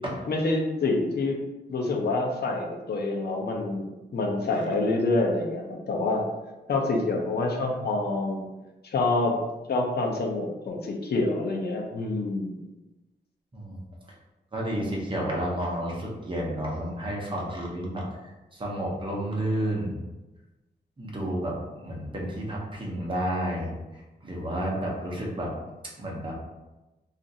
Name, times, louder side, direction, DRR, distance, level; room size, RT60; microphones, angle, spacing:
voice 1, 0.3-1.4 1.7-6.2 6.7-8.4 8.9-9.4 9.7-12.6, left 2 dB, 60° left, 1 dB, 0.6 m, -27 dB
voice 2, 14.5-20.0 21.0-21.5 21.8-23.7 24.2-25.5 26.0-26.3, right 1 dB, 25° right, -3 dB, 0.7 m, -31 dB
2.6 x 2.4 x 4.0 m, 1.1 s
wide cardioid pair, 170°, 18 cm